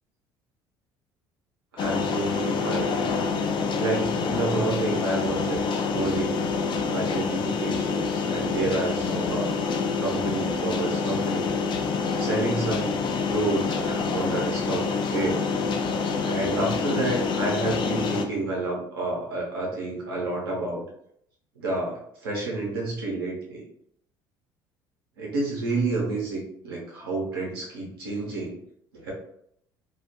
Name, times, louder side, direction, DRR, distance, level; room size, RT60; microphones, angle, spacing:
voice 1, 1.7-3.0 3.7-9.5 10.0-11.5 12.2-13.0 13.3-15.5 15.8-15.9 16.2-20.8 21.6-23.6 25.2-28.6 28.9-29.1, right 2 dB, 90° right, -3 dB, 0.7 m, -29 dB
sound 1, 1.8-18.2, left 5 dB, 45° left, 0.4 m, -27 dB
2.3 x 2.1 x 2.8 m, 0.70 s
hypercardioid pair, 60°, 12 cm